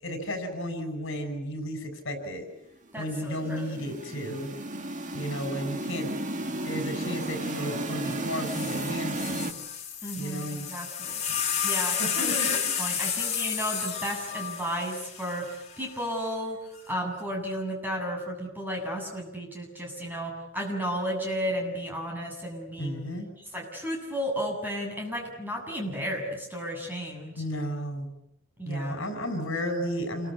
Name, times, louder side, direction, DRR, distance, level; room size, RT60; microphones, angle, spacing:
voice 1, 0.0-2.5 3.0-4.5 5.1-9.5 10.1-10.7 11.3-11.6 12.0-12.7 22.8-23.3 27.4-28.1 28.6-30.3, equal, 65° left, 7 dB, 6.2 m, -33 dB
voice 2, 2.9-3.6 10.0-11.2 11.6-23.1 23.5-27.4 28.6-29.0, equal, 10° right, 0 dB, 7.7 m, -33 dB
sound 1, 3.1-9.5, right 2 dB, 35° right, 2.0 m, -34 dB
sound 2, 8.1-8.2 8.4-15.8 16.7-17.2, left 7 dB, 35° left, 3.8 m, -31 dB
28.5 x 23.5 x 8.3 m, 0.80 s
head